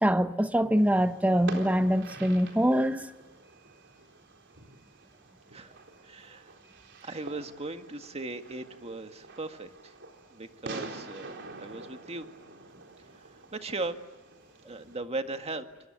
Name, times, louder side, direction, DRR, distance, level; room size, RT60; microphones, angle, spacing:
voice 1, 0.0-3.1, equal, 5° right, 1.1 m, -24 dB
Fireworks, 0.8-15.0, right 3 dB, 55° right, 4.1 m, -46 dB
voice 2, 6.0-6.5 7.0-9.9 10.3-12.3 13.5-14.0 14.7-15.7, right 2 dB, 30° right, 1.8 m, -38 dB
29.0 x 25.5 x 8.1 m
head